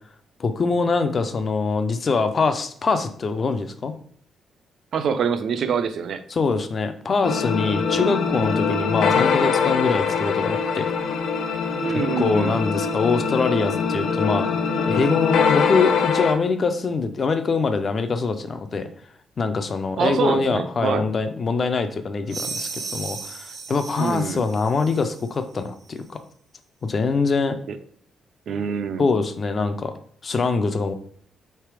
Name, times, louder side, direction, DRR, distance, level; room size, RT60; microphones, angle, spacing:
voice 1, 0.4-3.9 6.3-10.9 12.2-14.5 14.9-18.9 19.4-26.2 26.8-27.6 29.0-30.0 30.2-30.9, left 4 dB, 30° left, 9 dB, 0.4 m, -23 dB
voice 2, 4.9-6.2 11.8-12.6 20.0-21.1 24.0-24.4 27.7-27.8 28.5-29.1, right 6 dB, 55° right, 10 dB, 0.4 m, -25 dB
sound 1, 7.2-16.3, left 5 dB, 85° left, 0.5 m, -23 dB
sound 2, 22.3-25.3, right 4 dB, 70° right, 0.8 m, -35 dB
3.3 x 3.2 x 4.7 m, 0.62 s
wide cardioid pair, 170°, 0 cm